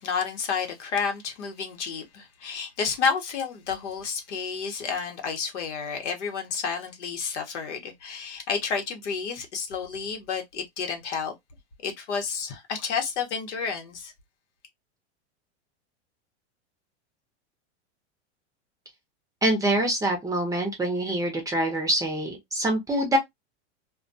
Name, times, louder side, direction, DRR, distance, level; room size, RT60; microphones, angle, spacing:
voice 1, 0.0-11.3 11.8-14.1, left 6 dB, 85° left, 1.0 m, -30 dB
voice 2, 19.4-23.2, right 1 dB, 10° right, 0.6 m, -25 dB
2.3 x 2.2 x 2.6 m
supercardioid pair, 140°, 34 cm